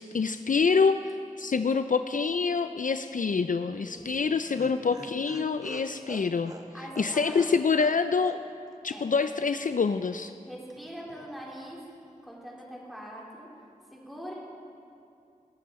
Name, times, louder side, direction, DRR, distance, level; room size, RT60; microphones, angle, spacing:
voice 1, 0.0-6.5 7.0-8.4 8.8-10.3, left 5 dB, 65° left, 10 dB, 0.4 m, -26 dB
voice 2, 3.7-4.3 4.7-4.9 6.7-7.3 8.9-9.2 10.5-11.8 12.2-13.5 13.9-14.3, equal, ahead, -4 dB, 3.1 m, -43 dB
Laughter, 4.0-8.0 8.2-8.4 8.7-8.8, right 1 dB, 25° right, 0.9 m, -44 dB
21.5 x 7.5 x 4.2 m, 2.5 s
wide cardioid pair, 40°, 15 cm